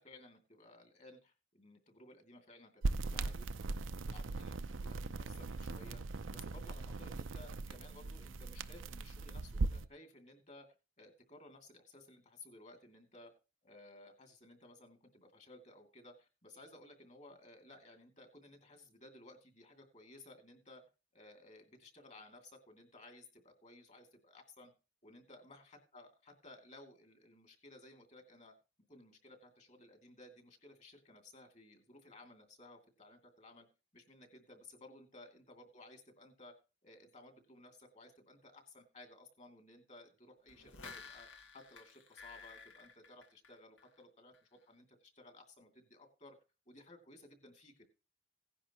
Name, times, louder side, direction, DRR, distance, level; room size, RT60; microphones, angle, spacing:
voice 1, 0.0-6.0 6.3-10.7 11.0-13.3 13.6-20.8 21.1-24.7 25.0-28.5 28.9-33.7 33.9-36.5 36.8-46.4 46.7-47.8, left 2 dB, 40° left, 5 dB, 2.6 m, -58 dB
sound 1, 2.8-9.9, right 3 dB, 85° right, 0.6 m, -39 dB
sound 2, 40.5-44.0 44.3-44.4, left 4 dB, 80° left, 2.0 m, -53 dB
16.5 x 10.0 x 3.0 m, 0.30 s
head